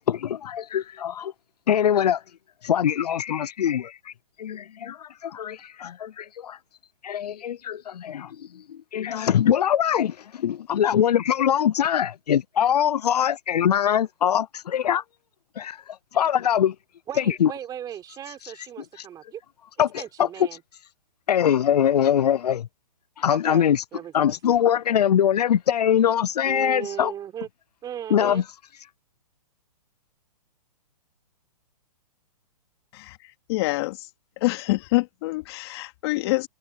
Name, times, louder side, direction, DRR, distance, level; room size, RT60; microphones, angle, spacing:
voice 1, 0.0-1.3 1.7-2.2 2.6-6.6 7.0-15.0 15.6-16.8 17.2-17.5 18.3-18.7 18.9-19.1 19.8-20.5 21.3-22.7 23.2-23.8 24.1-27.1 28.1-28.4, left 9 dB, 80° left, 0.5 m, -23 dB
voice 2, 17.1-19.4 20.0-20.6 23.3-24.4 26.4-27.5 27.8-28.4, right 10 dB, 20° right, 4.2 m, -36 dB
voice 3, 32.9-34.1 34.4-36.5, left 21 dB, 40° left, 2.6 m, -26 dB
hypercardioid pair, 140°, 20 cm